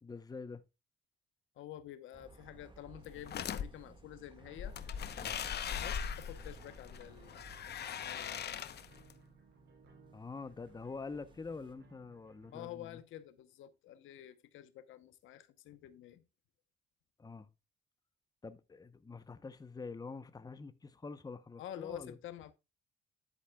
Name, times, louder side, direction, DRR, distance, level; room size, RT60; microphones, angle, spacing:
voice 1, 0.0-0.6 5.2-5.4 10.1-13.0 17.2-17.5 18.4-22.2, left 4 dB, 20° left, 0.7 m, -46 dB
voice 2, 1.6-4.7 5.4-8.3 12.5-16.2 21.6-22.5, left 12 dB, 85° left, 0.9 m, -49 dB
sound 1, 2.1-11.7, right 3 dB, 25° right, 1.7 m, -59 dB
sound 2, 3.0-3.6 4.6-9.1, left 8 dB, 55° left, 0.8 m, -40 dB
sound 3, 4.3-12.6, right 4 dB, 60° right, 3.2 m, -62 dB
10.5 x 8.2 x 2.3 m
cardioid pair, 90°, 20 cm